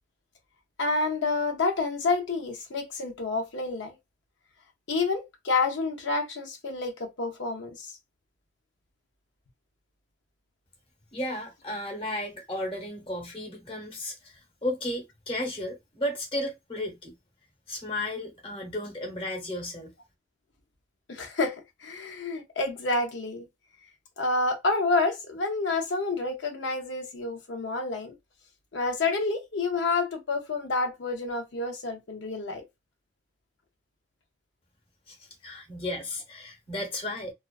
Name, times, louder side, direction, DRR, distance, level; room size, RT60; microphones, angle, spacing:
voice 1, 0.8-3.9 4.9-7.9 21.1-23.5 24.2-28.1 28.7-32.6, left 3 dB, 85° left, 0.6 m, -29 dB
voice 2, 11.1-17.1 17.7-19.9 35.1-35.2 35.4-37.3, left 1 dB, 30° left, 0.8 m, -34 dB
2.4 x 2.3 x 2.3 m
head